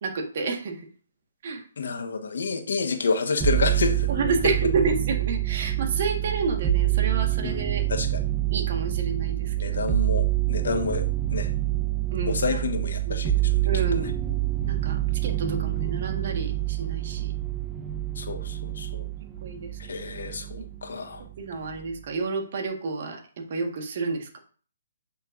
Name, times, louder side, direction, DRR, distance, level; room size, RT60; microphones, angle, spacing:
voice 1, 0.0-0.9 1.4-1.6 4.1-7.8 8.5-9.9 12.1-12.6 13.0-13.2 13.6-14.2 14.6-17.3 19.4-19.7 20.6-20.7 21.4-24.4, right 4 dB, 50° right, 4 dB, 1.5 m, -30 dB
voice 2, 1.8-4.1 7.4-7.5 7.9-8.2 9.6-11.5 12.3-13.6 18.1-19.0 19.8-21.2, left 4 dB, 70° left, 6 dB, 1.3 m, -29 dB
sound 1, 3.4-20.8 21.2-21.9, right 15 dB, 15° right, 0.6 m, -27 dB
8.4 x 5.5 x 2.6 m, 0.43 s
hypercardioid pair, 145°, 0 cm